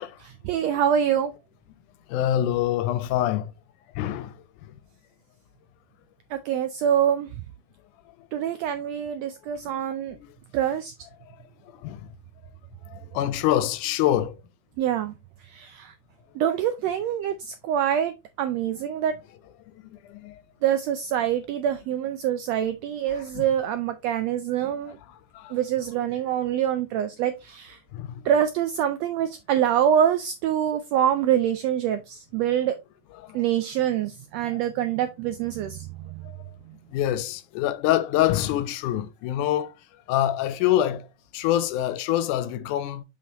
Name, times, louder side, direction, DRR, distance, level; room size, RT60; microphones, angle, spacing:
voice 1, 0.2-1.3 6.3-7.3 8.3-10.2 10.5-10.9 14.8-15.1 15.5-15.9 16.4-19.1 20.6-25.0 25.5-27.8 28.2-32.8 33.3-36.2, right 9 dB, 85° right, 1.5 m, -25 dB
voice 2, 2.1-3.5 4.0-4.4 4.6-4.7 9.6-9.8 10.2-10.3 11.8-12.0 12.9-14.4 19.8-20.3 23.1-23.5 25.1-25.6 27.9-28.2 33.2-33.4 34.4-34.6 36.9-39.7 40.1-41.1 41.3-43.0, left 12 dB, 85° left, 2.1 m, -26 dB
6.9 x 5.4 x 2.9 m
omnidirectional pair, 3.5 m